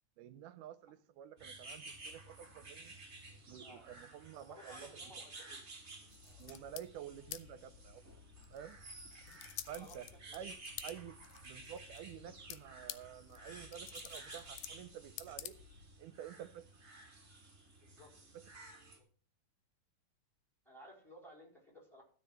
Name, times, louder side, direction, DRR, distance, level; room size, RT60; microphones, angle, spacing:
voice 1, 0.2-3.0 3.5-5.2 6.4-8.1 8.5-8.8 9.7-10.1 10.3-11.2 11.4-15.6 16.0-16.7 18.3-18.5, right 10 dB, 80° right, 2.1 m, -50 dB
sound 1, 1.4-19.0, right 2 dB, 35° right, 1.2 m, -53 dB
voice 2, 4.4-5.6 6.2-6.5 9.7-10.0 10.3-10.5 17.8-18.1 19.0-19.1 20.7-22.0, equal, ahead, 4.0 m, -57 dB
sound 2, 6.1-16.0, left 12 dB, 80° left, 2.3 m, -52 dB
13.0 x 4.9 x 7.8 m
omnidirectional pair, 3.9 m